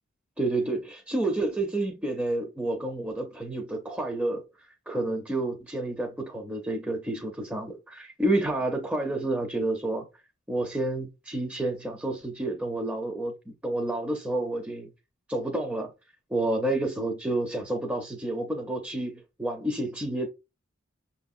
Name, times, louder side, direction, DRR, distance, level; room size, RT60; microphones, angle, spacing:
voice 1, 0.4-4.4 4.9-10.0 10.5-14.9 15.3-15.9 16.3-20.3, right 2 dB, 5° right, 0.5 m, -29 dB
5.9 x 2.7 x 2.4 m
head